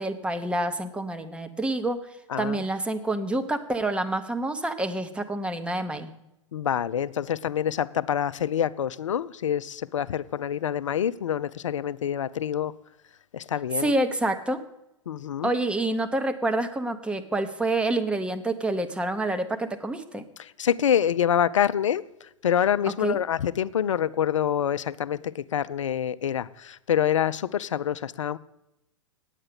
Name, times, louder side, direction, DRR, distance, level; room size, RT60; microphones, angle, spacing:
voice 1, 0.0-2.0 2.4-6.1 13.8-14.6 15.4-20.2 23.0-23.2, right 2 dB, 5° right, 0.9 m, -27 dB
voice 2, 2.3-2.7 6.5-12.7 13.3-13.9 15.1-15.5 20.4-28.4, left 9 dB, 75° left, 0.5 m, -26 dB
9.1 x 8.7 x 6.7 m
hypercardioid pair, 105°, 16 cm